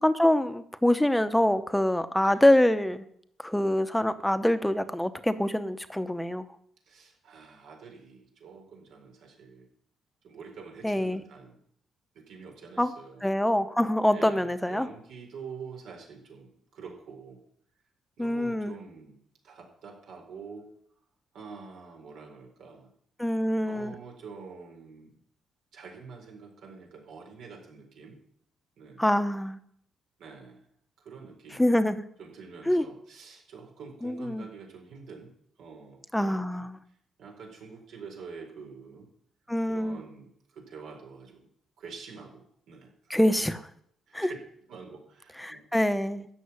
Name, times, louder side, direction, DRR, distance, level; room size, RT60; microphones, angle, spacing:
voice 1, 0.0-3.0 3.4-6.5 10.8-11.2 12.8-12.9 13.2-14.9 18.2-18.8 23.2-23.9 29.0-29.6 31.6-32.0 32.7-32.8 34.0-34.5 36.1-36.8 39.5-40.0 43.1-43.7 44.1-44.3 45.4-46.3, left 1 dB, 5° left, 10 dB, 1.0 m, -25 dB
voice 2, 6.9-9.7 10.2-11.6 12.1-13.2 14.1-17.4 18.2-20.7 21.3-22.9 23.6-25.1 25.7-28.2 28.8-29.0 30.2-30.7 31.0-31.7 32.2-35.3 35.6-36.7 37.2-39.1 39.7-41.5 41.8-43.1 44.1-44.4 44.7-45.6, right 5 dB, 75° right, 1 dB, 4.4 m, -46 dB
13.5 x 6.7 x 9.7 m, 0.68 s
cardioid pair, 90°, 0 cm